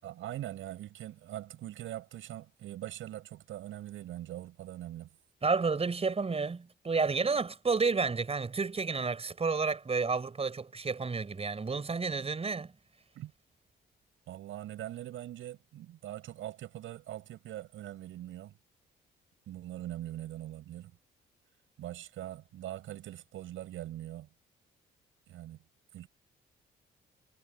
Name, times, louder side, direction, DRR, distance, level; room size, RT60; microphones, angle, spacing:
voice 1, 0.0-5.1 13.2-13.3 14.3-18.5 19.5-20.9 21.8-24.3 25.3-25.6 25.9-26.1, right 13 dB, 80° right, 7.1 m, -42 dB
voice 2, 5.4-12.7, right 4 dB, 30° right, 5.7 m, -30 dB
cardioid pair, 90°, 20 cm